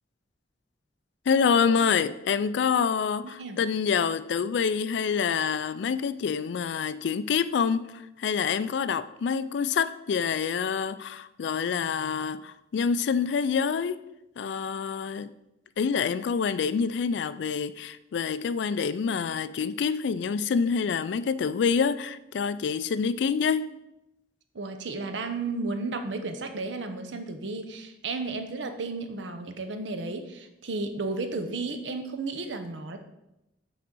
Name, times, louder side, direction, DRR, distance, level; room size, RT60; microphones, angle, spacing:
voice 1, 1.3-14.0 14.4-15.3 15.8-23.7, left 6 dB, 60° left, 0.3 m, -27 dB
voice 2, 3.2-3.6 24.5-33.0, right 3 dB, 70° right, 0.7 m, -33 dB
6.0 x 4.0 x 6.1 m
head